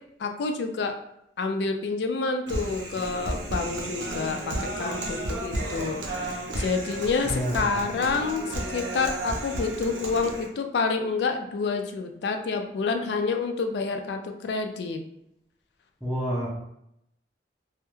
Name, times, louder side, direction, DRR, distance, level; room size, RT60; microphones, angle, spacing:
voice 1, 0.2-0.9 1.4-6.0 6.6-15.0, left 4 dB, 65° left, 6 dB, 0.3 m, -28 dB
Human voice, 2.5-10.5, right 1 dB, 85° right, 0.5 m, -33 dB
voice 2, 7.2-7.7 16.0-16.5, equal, 5° right, -12 dB, 0.5 m, -29 dB
2.2 x 2.0 x 3.0 m, 0.78 s
head